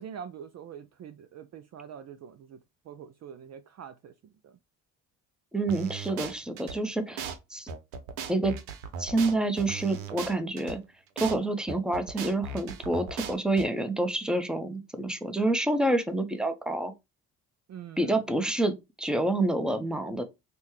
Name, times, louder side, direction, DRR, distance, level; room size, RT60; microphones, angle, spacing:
voice 1, 0.0-2.6 2.8-4.6 17.7-18.5, right 8 dB, 40° right, 0.4 m, -45 dB
voice 2, 5.5-7.7 8.3-8.5 9.0-10.8 11.2-16.9 18.0-20.2, right 2 dB, ahead, 0.7 m, -28 dB
sound 1, 5.7-6.8 7.2-7.4 7.7-10.8 11.2-11.4 11.7-13.7, right 5 dB, 80° right, 0.7 m, -37 dB
5.3 x 2.2 x 3.1 m
hypercardioid pair, 55°, 42 cm